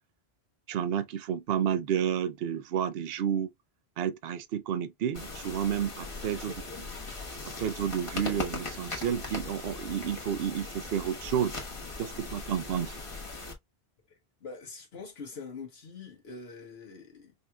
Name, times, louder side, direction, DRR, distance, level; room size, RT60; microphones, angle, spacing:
voice 1, 0.7-3.5 4.0-6.5 7.6-11.5 12.0-13.0, right 9 dB, 70° right, 0.8 m, -30 dB
sound 1, 5.1-13.5, left 3 dB, 30° left, 1.2 m, -39 dB
voice 2, 6.3-6.9 14.1-17.3, left 4 dB, 75° left, 1.3 m, -45 dB
5.4 x 2.7 x 2.2 m
omnidirectional pair, 1.0 m